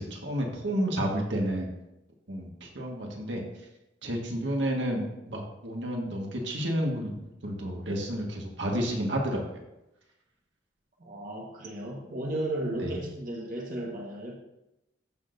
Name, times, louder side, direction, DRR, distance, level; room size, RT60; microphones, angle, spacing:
voice 1, 0.0-1.7 2.3-3.4 4.0-9.4 12.8-12.9, equal, 80° right, 0 dB, 1.7 m, -31 dB
voice 2, 11.0-14.3, right 1 dB, 50° right, -2 dB, 1.4 m, -34 dB
14.5 x 6.1 x 2.7 m, 0.89 s
head